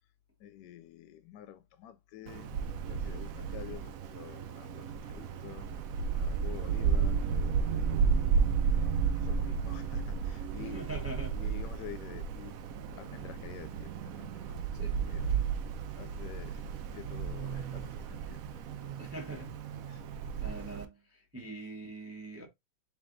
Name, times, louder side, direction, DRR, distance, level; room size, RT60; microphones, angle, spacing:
voice 1, 0.4-2.5 2.9-5.7 6.1-7.2 7.7-8.1 8.7-10.9 11.3-12.5 13.0-14.6 14.9-15.3 16.0-16.7 16.9-18.4 19.9-20.0 20.4-20.7, left 11 dB, 80° left, 1.2 m, -49 dB
Wind, 2.3-20.8, right 6 dB, 70° right, 0.9 m, -33 dB
voice 2, 10.5-11.4 14.7-15.0 18.7-19.6 20.4-22.5, right 2 dB, 15° right, 0.6 m, -43 dB
3.5 x 3.3 x 3.7 m
omnidirectional pair, 1.9 m